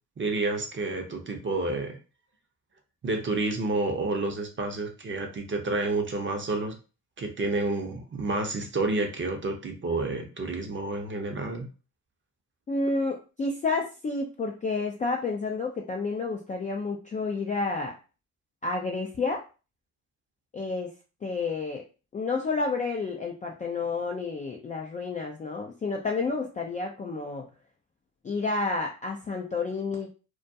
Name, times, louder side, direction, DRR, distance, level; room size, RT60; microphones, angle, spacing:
voice 1, 0.2-2.0 3.0-6.7 7.2-11.7, right 2 dB, 25° right, 4 dB, 0.7 m, -29 dB
voice 2, 12.7-17.9 18.6-19.4 20.5-20.9 21.2-21.8 22.1-27.5 28.2-30.1, left 3 dB, 20° left, 1 dB, 0.3 m, -30 dB
2.3 x 2.2 x 2.7 m, 0.33 s
hypercardioid pair, 60°, 45 cm